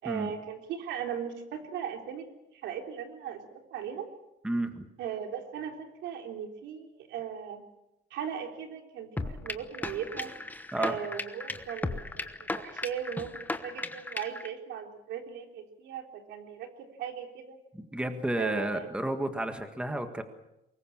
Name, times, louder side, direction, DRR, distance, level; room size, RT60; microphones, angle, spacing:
voice 1, 0.0-2.3 2.5-4.1 5.0-7.6 8.1-10.3 10.8-17.6 18.4-18.9, right 8 dB, 85° right, 4 dB, 3.7 m, -38 dB
voice 2, 4.4-4.9 10.7-11.0 17.8-20.2, right 1 dB, 5° right, 7 dB, 1.7 m, -31 dB
sound 1, 9.2-14.5, left 2 dB, 10° left, 1.1 m, -36 dB
24.0 x 21.5 x 7.4 m, 0.89 s
cardioid pair, 155°, 18 cm